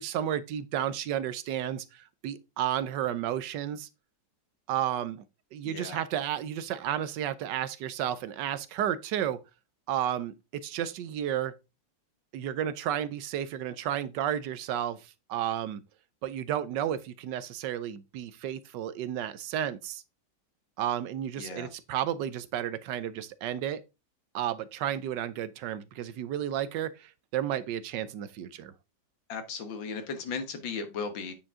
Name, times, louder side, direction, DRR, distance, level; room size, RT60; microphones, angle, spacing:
voice 1, 0.0-3.9 4.7-5.2 5.5-9.4 9.9-11.5 12.3-15.8 16.2-20.0 20.8-23.8 24.3-28.7, right 10 dB, 75° right, 1.2 m, -32 dB
voice 2, 5.6-6.0 21.4-21.7 29.3-31.3, left 5 dB, 80° left, 2.1 m, -36 dB
9.0 x 4.8 x 3.6 m
omnidirectional pair, 2.0 m